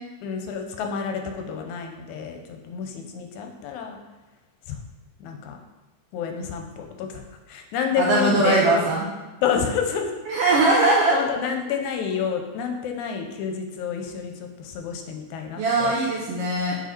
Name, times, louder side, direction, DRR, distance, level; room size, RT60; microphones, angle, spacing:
voice 1, 0.2-4.0 4.7-4.8 5.2-5.6 6.1-7.2 7.5-8.8 9.4-10.1 10.8-15.9, left 7 dB, 80° left, 4 dB, 2.0 m, -29 dB
voice 2, 8.0-9.1 10.3-11.2 15.6-16.8, right 2 dB, 75° right, -3 dB, 1.4 m, -20 dB
5.4 x 4.9 x 4.2 m, 1.1 s
omnidirectional pair, 3.5 m